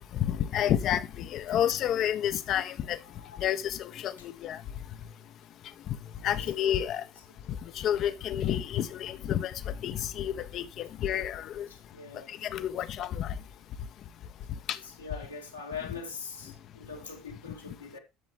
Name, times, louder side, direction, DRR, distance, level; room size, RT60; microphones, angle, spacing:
voice 1, 0.2-3.0 3.4-4.6 6.2-7.0 7.8-9.5 9.8-11.7 12.4-13.3 14.7-14.8, left 10 dB, 45° left, 1.0 m, -30 dB
voice 2, 6.2-6.5 11.7-12.3 15.0-18.0, left 5 dB, 85° left, 2.3 m, -42 dB
11.5 x 7.2 x 3.4 m
figure-of-eight pair, 65°, 0 cm